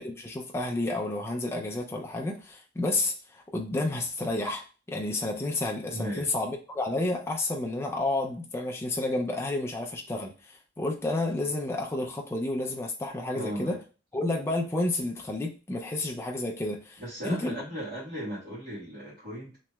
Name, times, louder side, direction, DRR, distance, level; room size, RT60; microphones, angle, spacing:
voice 1, 0.0-4.6 4.9-13.8 14.1-17.5, left 2 dB, 15° left, 0 dB, 0.4 m, -30 dB
voice 2, 5.9-6.3 13.3-13.8 17.0-19.6, right 1 dB, 50° right, -12 dB, 1.4 m, -36 dB
3.1 x 2.8 x 2.2 m, 0.35 s
head